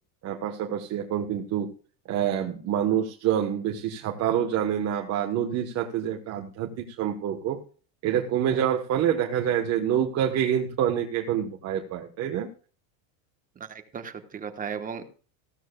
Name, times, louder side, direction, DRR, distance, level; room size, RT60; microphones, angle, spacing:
voice 1, 0.2-1.7 2.1-7.6 8.0-12.5, right 9 dB, 40° right, 2 dB, 1.3 m, -27 dB
voice 2, 13.7-15.0, right 6 dB, 20° right, 8 dB, 1.2 m, -36 dB
15.5 x 13.5 x 2.3 m, 0.39 s
supercardioid pair, 150°, 41 cm